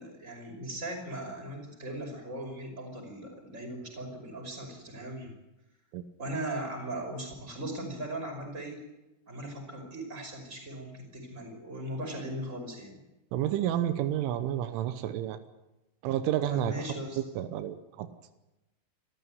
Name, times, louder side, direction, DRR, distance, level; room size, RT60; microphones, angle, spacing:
voice 1, 0.0-5.3 6.2-8.8 9.3-13.0 16.5-17.2, right 1 dB, 15° right, 3 dB, 5.6 m, -38 dB
voice 2, 13.3-15.4 16.0-16.7 17.4-18.1, right 11 dB, 85° right, 10 dB, 3.5 m, -30 dB
27.0 x 14.0 x 9.5 m, 0.99 s
omnidirectional pair, 5.5 m